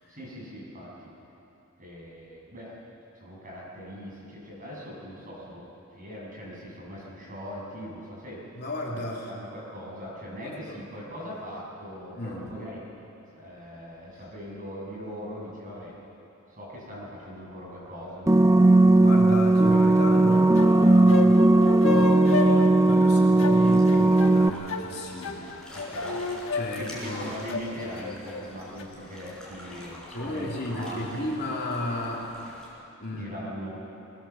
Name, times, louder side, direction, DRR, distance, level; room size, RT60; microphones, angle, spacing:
voice 1, 0.1-1.1 1.8-2.7 3.2-8.5 8.9-9.0 9.3-12.8 13.3-16.0 16.5-18.3 20.3-20.4 25.7-26.2 26.7-31.3 33.1-33.7, equal, 40° right, -4 dB, 7.2 m, -40 dB
voice 2, 8.6-9.3 10.4-10.8 12.2-12.5 19.0-21.5 21.8-25.4 26.5-27.3 30.1-32.3 33.0-33.7, left 1 dB, 50° left, -2 dB, 3.1 m, -34 dB
sound 1, 18.3-24.5, right 2 dB, 15° right, 0.4 m, -18 dB
sound 2, 20.3-28.8, left 5 dB, 70° left, 1.3 m, -32 dB
sound 3, 23.6-32.7, left 1 dB, 5° left, 5.4 m, -45 dB
21.0 x 20.0 x 7.2 m, 2.9 s
head